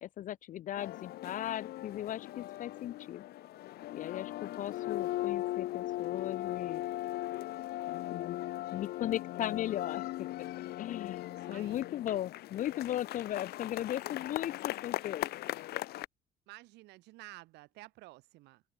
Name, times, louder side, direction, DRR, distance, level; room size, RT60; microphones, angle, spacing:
voice 1, 0.0-3.3 3.9-6.8 8.1-8.4 8.7-10.0 10.4-10.5 10.8-15.3, left 12 dB, 50° left, 0.4 m, -37 dB
sound 1, 0.8-16.0, left 15 dB, 70° left, 0.8 m, -38 dB
voice 2, 11.3-11.9 16.5-18.6, right 20 dB, 90° right, 4.5 m, -52 dB
cardioid pair, 110°, 17 cm